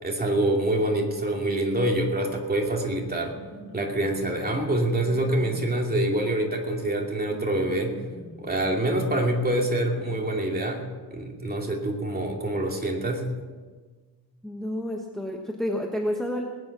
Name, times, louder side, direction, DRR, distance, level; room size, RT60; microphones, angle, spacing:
voice 1, 0.0-3.3 3.7-8.0 8.4-10.8 11.1-13.3, right 1 dB, 20° right, 0 dB, 2.6 m, -26 dB
sound 1, 3.1-11.0, right 1 dB, 35° right, 3.3 m, -46 dB
voice 2, 14.4-16.4, equal, ahead, 1 dB, 1.1 m, -29 dB
20.0 x 9.5 x 6.0 m, 1.4 s
wide cardioid pair, 140°, 41 cm